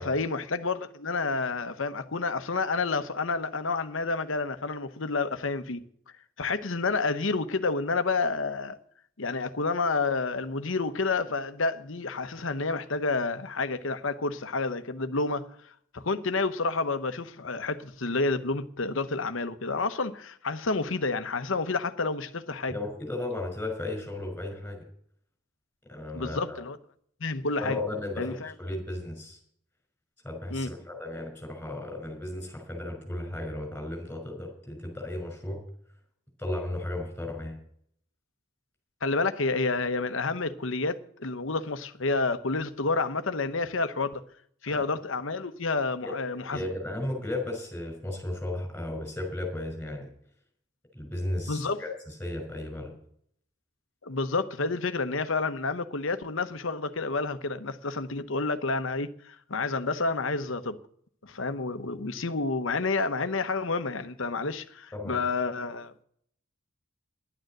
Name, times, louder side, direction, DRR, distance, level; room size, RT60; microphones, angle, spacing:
voice 1, 0.0-5.8 6.4-8.8 9.2-15.5 15.9-22.7 26.1-26.8 27.2-27.8 28.2-28.5 30.5-30.7 39.0-44.2 44.6-46.6 51.5-51.8 54.0-60.8 61.2-66.0, left 3 dB, 65° left, 1.0 m, -29 dB
voice 2, 22.7-24.8 25.9-26.6 27.6-29.4 30.2-35.6 36.4-37.6 44.7-44.8 46.3-50.1 50.9-52.9 64.9-65.2, left 1 dB, 5° left, 5.6 m, -35 dB
11.0 x 9.3 x 7.8 m
head